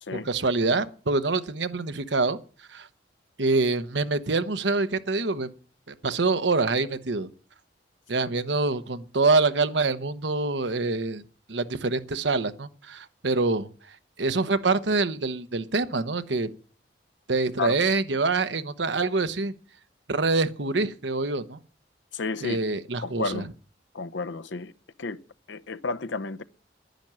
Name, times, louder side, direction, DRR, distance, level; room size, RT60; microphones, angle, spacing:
voice 1, 0.1-2.4 2.7-2.9 3.4-5.5 6.0-7.3 8.1-11.2 11.5-13.7 14.2-16.5 17.3-19.5 20.1-21.6 22.4-23.4, right 3 dB, 75° right, 1.0 m, -25 dB
voice 2, 22.1-22.6 23.0-23.5 23.9-24.7 25.0-25.2 25.5-26.4, left 4 dB, 90° left, 0.8 m, -31 dB
10.5 x 10.5 x 7.5 m
head